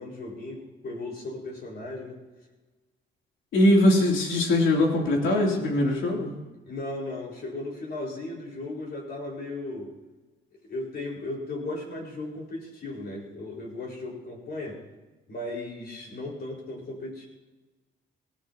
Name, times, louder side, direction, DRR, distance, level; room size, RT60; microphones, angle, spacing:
voice 1, 0.0-2.2 6.7-9.9 10.6-14.8 15.3-17.3, left 2 dB, 55° left, -1 dB, 5.2 m, -36 dB
voice 2, 3.5-6.3, left 1 dB, 80° left, -1 dB, 3.3 m, -21 dB
18.5 x 16.5 x 3.0 m, 1.2 s
cardioid pair, 90°, 20 cm